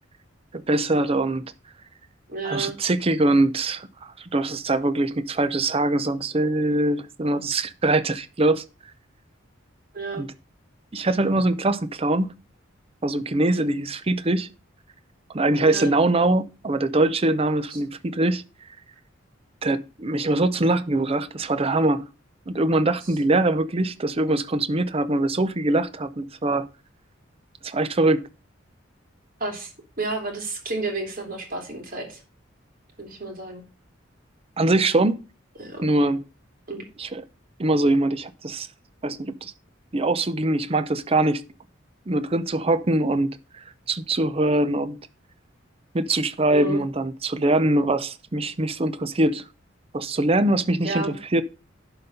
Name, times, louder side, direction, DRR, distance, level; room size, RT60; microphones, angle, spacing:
voice 1, 0.5-1.4 2.4-8.6 10.1-10.3 10.9-12.3 13.0-14.5 15.3-18.4 19.6-22.1 22.5-26.7 27.6-28.2 34.6-35.2 35.8-36.2 37.0-37.2 37.6-38.7 39.0-39.5 39.9-41.4 42.1-45.0 45.9-49.4 49.9-51.1 51.3-51.4, right 2 dB, 30° right, 0.6 m, -23 dB
voice 2, 2.3-2.8 9.9-10.3 15.6-15.9 17.7-17.8 29.4-29.7 30.0-32.2 33.0-33.6 35.6-35.9 36.7-36.8 46.5-46.8 50.8-51.2, right 3 dB, 45° right, 2.9 m, -31 dB
11.0 x 4.0 x 5.3 m
head